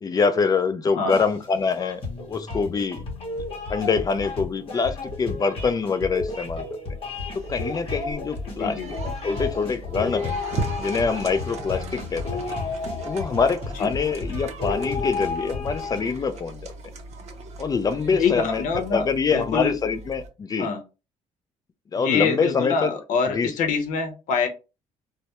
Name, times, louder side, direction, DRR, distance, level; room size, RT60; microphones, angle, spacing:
voice 1, 0.0-3.0 3.7-6.7 7.3-8.8 9.2-10.3 10.8-12.4 13.0-16.7 17.6-18.6 18.9-20.7 21.9-22.9 23.3-23.5, left 5 dB, 30° left, 0.3 m, -25 dB
sound 1, 1.1-16.0, left 3 dB, 45° left, 0.9 m, -32 dB
sound 2, 7.4-20.3, right 3 dB, 55° right, 0.5 m, -38 dB
voice 2, 8.4-8.9 13.7-13.9 18.1-19.1 19.3-19.8 20.6-20.8 22.0-24.5, left 5 dB, 80° left, 0.7 m, -25 dB
2.1 x 2.0 x 2.8 m
cardioid pair, 95°, 13 cm